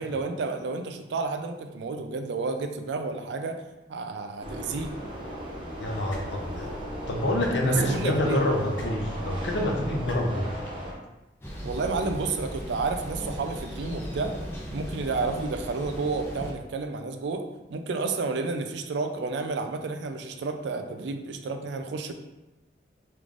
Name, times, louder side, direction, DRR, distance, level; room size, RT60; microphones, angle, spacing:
voice 1, 0.0-3.6 3.9-4.9 7.6-8.4 11.6-14.4 14.7-22.1, right 4 dB, 70° right, 7 dB, 0.3 m, -31 dB
sound 1, 4.4-10.9, equal, 25° right, 0.6 m, -36 dB
voice 2, 5.8-6.7 7.1-10.6, left 1 dB, 75° left, 1 dB, 0.6 m, -27 dB
sound 2, 6.1-6.2 7.4-7.5 8.7-8.9 10.0-10.2 11.4-11.5, left 1 dB, 50° left, 0.9 m, -39 dB
Thunder, 11.4-16.5, equal, 15° left, 0.5 m, -37 dB
3.5 x 3.2 x 2.4 m, 1.0 s
head